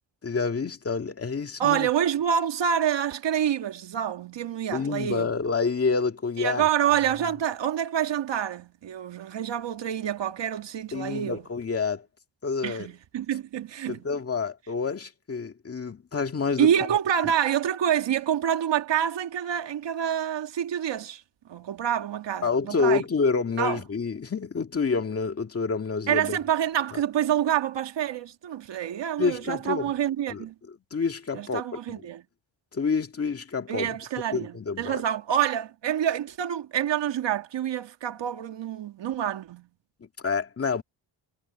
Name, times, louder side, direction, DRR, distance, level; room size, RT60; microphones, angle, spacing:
voice 1, 0.2-1.9 4.7-6.7 10.9-12.1 12.4-12.9 13.9-16.7 22.4-26.4 26.9-27.0 29.2-29.9 30.3-30.4 30.9-31.6 31.9-32.0 32.7-34.0 34.3-35.0 40.0-40.8, left 4 dB, 30° left, 2.1 m, -28 dB
voice 2, 1.6-5.3 6.4-11.4 12.6-14.0 16.6-21.2 21.5-23.0 23.6-23.8 26.1-30.5 31.3-32.2 33.7-39.7, right 9 dB, 65° right, 1.8 m, -27 dB
wide cardioid pair, 155°, 47 cm